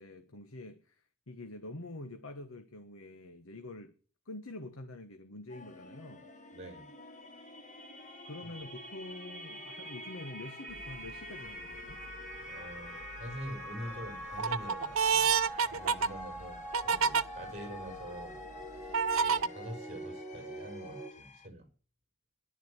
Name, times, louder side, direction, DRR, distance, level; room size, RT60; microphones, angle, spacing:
voice 1, 0.0-4.0 4.2-6.3 8.2-12.0, left 2 dB, 85° left, 1.4 m, -46 dB
sound 1, 5.5-21.5, left 3 dB, 35° left, 1.5 m, -53 dB
voice 2, 6.5-6.9 12.5-15.3 15.7-18.4 18.7-21.7, equal, 35° right, 4.9 m, -45 dB
sound 2, 6.9-21.1, equal, 5° left, 4.2 m, -45 dB
sound 3, 10.8-11.1 11.7-12.4 12.9-13.5 14.0-17.2 17.9-18.0 18.9-19.5, right 6 dB, 80° right, 0.7 m, -29 dB
14.0 x 11.5 x 8.2 m
head